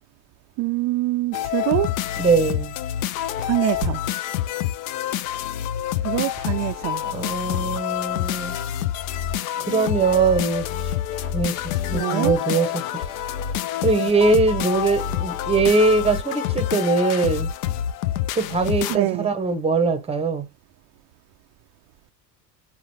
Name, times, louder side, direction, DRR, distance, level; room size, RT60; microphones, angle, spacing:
voice 1, 0.6-2.0 3.4-4.0 6.0-7.0 11.9-12.3 18.9-19.3, right 17 dB, 35° right, 0.4 m, -24 dB
sound 1, 1.3-19.0, left 11 dB, 55° left, 0.6 m, -27 dB
voice 2, 2.2-2.8 7.0-8.5 9.6-11.6 11.9-13.0 13.8-17.5 18.4-20.5, right 4 dB, 10° right, 0.8 m, -22 dB
4.0 x 3.8 x 2.9 m
figure-of-eight pair, 70°, 49 cm